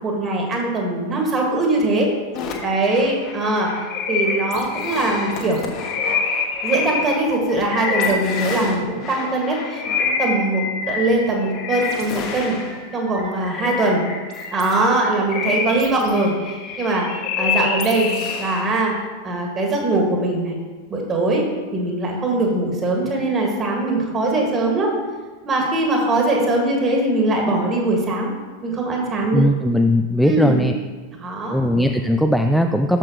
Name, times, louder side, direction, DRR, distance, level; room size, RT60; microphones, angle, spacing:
voice 1, 0.0-2.1 2.6-3.7 4.1-5.6 6.6-12.6 12.9-14.0 14.5-17.1 17.4-18.1 18.4-18.9 19.2-20.6 20.9-24.9 25.5-28.3 28.6-29.4 30.2-30.6 31.2-31.6, right 2 dB, 25° right, 0 dB, 2.2 m, -21 dB
sound 1, 2.3-19.0, left 5 dB, 35° left, 1.4 m, -27 dB
voice 2, 29.3-30.7 31.5-33.0, equal, ahead, 5 dB, 0.4 m, -18 dB
12.0 x 7.3 x 3.2 m, 1.3 s
figure-of-eight pair, 90°, 0 cm